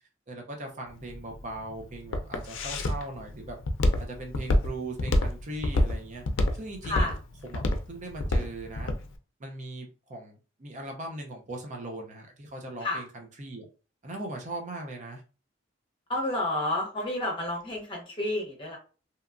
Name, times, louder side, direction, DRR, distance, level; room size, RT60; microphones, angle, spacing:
voice 1, 0.3-3.6 4.0-6.2 6.5-7.1 7.4-8.9 9.4-13.6 14.0-15.2, right 2 dB, 40° right, 2 dB, 0.5 m, -39 dB
Walk footsteps, 0.9-9.0, left 1 dB, 70° left, 0.4 m, -27 dB
voice 2, 6.8-7.1 12.8-13.0 16.1-18.8, left 1 dB, 25° left, -1 dB, 0.8 m, -30 dB
2.8 x 2.2 x 2.4 m, 0.35 s
head